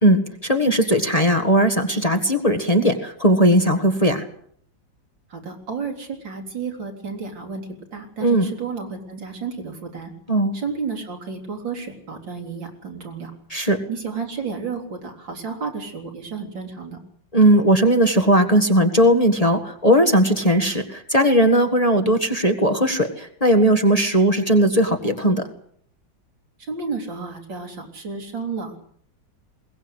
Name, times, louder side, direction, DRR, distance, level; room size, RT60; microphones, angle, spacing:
voice 1, 0.0-4.2 8.2-8.5 10.3-10.5 13.5-13.8 17.3-25.4, right 1 dB, 20° left, 6 dB, 1.7 m, -18 dB
voice 2, 5.3-10.1 10.5-13.3 13.9-17.0 26.7-28.8, right 5 dB, 80° right, 3 dB, 4.3 m, -32 dB
21.5 x 19.0 x 8.1 m, 0.64 s
omnidirectional pair, 2.0 m